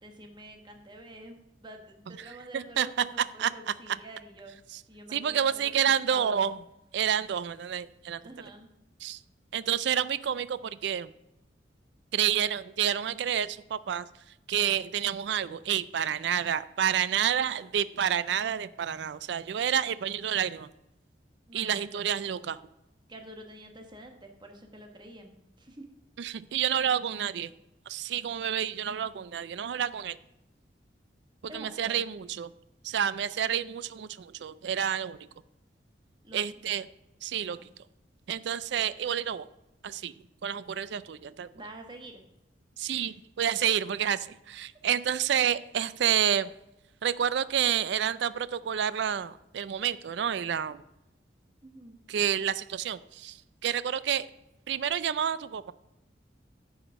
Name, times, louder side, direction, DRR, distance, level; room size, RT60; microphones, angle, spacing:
voice 1, 0.0-4.5 4.9-6.6 8.2-8.7 21.5-22.1 23.1-25.9 31.5-32.0 36.2-36.7 37.5-37.6 41.5-42.2 42.9-43.1 51.6-52.0, right 1 dB, 25° right, 3 dB, 1.2 m, -47 dB
voice 2, 2.5-2.9 3.4-3.5 5.1-6.6 6.9-8.2 9.0-9.2 9.5-11.1 12.1-14.0 14.5-20.7 21.5-22.6 26.2-27.5 27.9-30.2 31.5-32.5 32.8-35.3 36.3-36.8 37.2-37.6 38.3-39.5 39.8-40.1 40.4-41.5 42.8-46.5 47.0-50.8 52.1-53.4 53.6-54.3 54.7-55.7, right 9 dB, 65° right, 16 dB, 0.4 m, -29 dB
10.0 x 5.0 x 6.3 m, 0.91 s
head